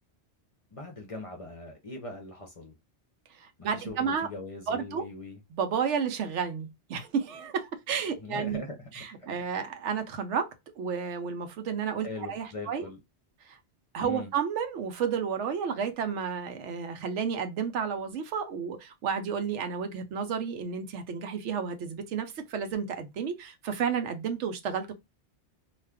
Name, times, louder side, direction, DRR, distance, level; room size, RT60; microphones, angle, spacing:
voice 1, 0.7-2.8 3.6-5.4 8.2-9.0 12.0-13.0 14.0-14.3, left 2 dB, 40° left, 0.6 m, -41 dB
voice 2, 3.4-4.3 4.7-5.0 5.5-8.6 8.9-12.9 13.5-13.6 13.9-24.9, right 6 dB, 85° right, 1.0 m, -31 dB
2.4 x 2.4 x 3.3 m
omnidirectional pair, 1.2 m